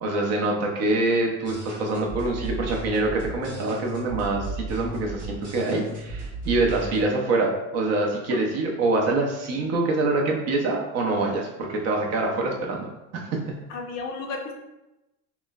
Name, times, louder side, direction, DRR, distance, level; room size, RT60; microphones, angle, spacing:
voice 1, 0.0-12.9 13.1-13.5, right 2 dB, 40° right, 0 dB, 0.5 m, -25 dB
sound 1, 1.4-7.0, right 2 dB, 20° right, 0.9 m, -35 dB
voice 2, 13.7-14.5, left 4 dB, 45° left, 2 dB, 0.4 m, -34 dB
3.0 x 2.0 x 2.3 m, 0.97 s
supercardioid pair, 115°, 39 cm